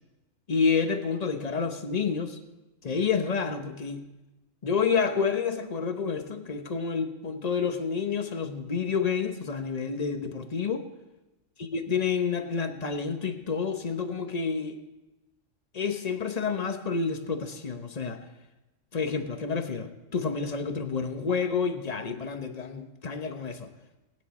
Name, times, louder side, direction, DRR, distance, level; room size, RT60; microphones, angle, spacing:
voice 1, 0.5-2.4 2.8-4.1 4.6-10.9 11.7-14.8 15.7-18.2 18.9-23.7, left 5 dB, 35° left, 0.8 m, -29 dB
19.5 x 9.6 x 4.2 m
omnidirectional pair, 1.4 m